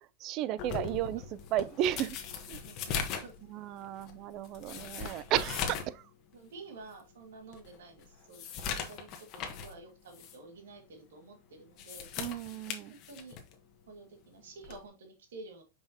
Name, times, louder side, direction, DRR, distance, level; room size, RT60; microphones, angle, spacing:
voice 1, 0.2-2.2 2.5-2.6 3.4-6.0 12.2-12.9, right 12 dB, 45° right, 0.5 m, -34 dB
sound 1, 0.6-6.0 6.3-6.4 7.0-7.1 7.5-9.8 10.1-10.4 11.6-13.5 14.6-14.9, left 6 dB, 45° left, 1.3 m, -39 dB
voice 2, 2.6-3.3 6.3-8.4 8.8-12.1 12.9-13.4 13.9-15.6, right 3 dB, 85° right, 2.1 m, -50 dB
5.8 x 5.6 x 2.9 m
supercardioid pair, 135°, 0 cm